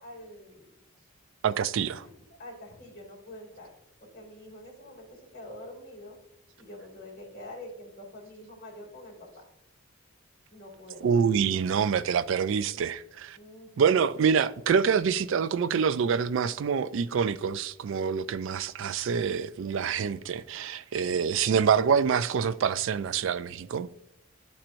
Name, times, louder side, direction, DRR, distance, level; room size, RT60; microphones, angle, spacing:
voice 1, 0.0-0.7 1.8-2.1 2.4-3.7 4.0-6.2 6.6-9.5 10.5-11.1 13.3-14.3 21.0-21.4, left 1 dB, 40° left, 2.7 m, -46 dB
voice 2, 1.4-2.1 11.0-13.4 13.8-23.9, right 6 dB, 60° right, 0.3 m, -26 dB
11.0 x 4.4 x 2.6 m
head